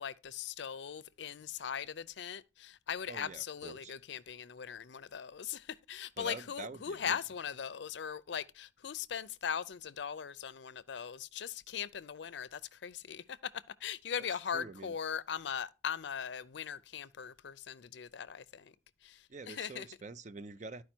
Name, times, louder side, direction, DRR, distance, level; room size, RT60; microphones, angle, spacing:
voice 1, 0.0-18.7 19.0-19.9, left 7 dB, 70° left, 0.5 m, -40 dB
voice 2, 3.1-3.9 6.2-7.2 14.5-14.9 19.3-20.8, right 3 dB, 40° right, 0.5 m, -46 dB
12.0 x 4.8 x 4.4 m
head